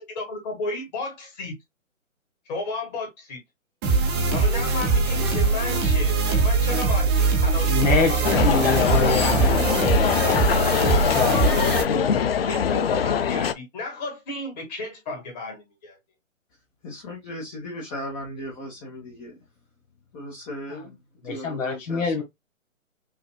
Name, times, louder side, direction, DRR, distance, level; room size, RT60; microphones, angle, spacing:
voice 1, 0.0-1.5 2.5-3.4 4.3-7.1 7.4-9.2 9.9-12.0 12.5-16.0, left 3 dB, 30° left, 1.9 m, -33 dB
sound 1, 3.8-11.8, right 4 dB, 15° right, 0.9 m, -22 dB
voice 2, 7.7-10.6 11.1-11.5 21.2-22.2, left 4 dB, 65° left, 1.7 m, -26 dB
sound 2, 8.2-13.5, left 7 dB, 45° left, 0.4 m, -23 dB
voice 3, 16.8-19.4 20.1-20.9 21.2-22.1, left 1 dB, 15° left, 1.1 m, -37 dB
5.8 x 2.6 x 2.2 m
hypercardioid pair, 145°, 41 cm